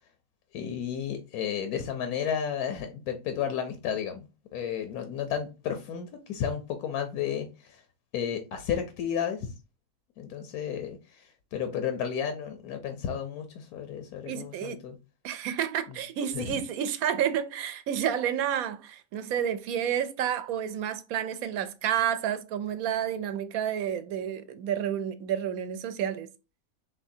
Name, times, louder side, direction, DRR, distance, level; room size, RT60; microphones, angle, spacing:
voice 1, 0.5-7.8 8.1-9.5 10.2-15.0 16.3-16.6, left 8 dB, 85° left, 1.2 m, -33 dB
voice 2, 14.3-14.8 15.2-26.3, right 9 dB, 80° right, 1.0 m, -30 dB
4.8 x 3.2 x 2.6 m
omnidirectional pair, 1.5 m